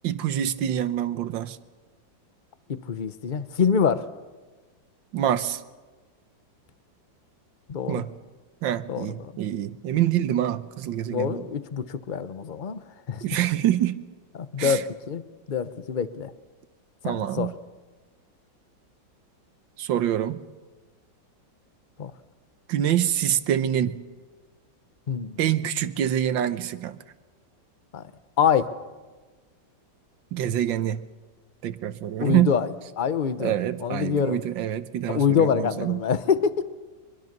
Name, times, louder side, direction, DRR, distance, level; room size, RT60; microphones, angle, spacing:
voice 1, 0.0-1.6 5.1-5.6 7.9-8.1 8.6-11.5 13.2-14.0 14.6-14.8 17.0-17.5 19.8-20.4 22.7-24.0 25.4-27.0 30.3-31.0 31.6-32.5 33.4-36.0, right 11 dB, 80° right, 12 dB, 1.6 m, -26 dB
voice 2, 2.7-4.0 7.7-8.0 8.9-9.3 11.1-12.8 13.1-13.2 14.3-15.2 15.5-16.3 17.0-17.5 22.0-22.1 25.1-25.4 27.9-28.0 28.4-28.7 32.2-32.7 33.0-33.5 33.8-34.4 35.1-36.6, left 7 dB, 40° left, 12 dB, 0.7 m, -25 dB
24.0 x 21.5 x 6.7 m, 1.3 s
omnidirectional pair, 2.1 m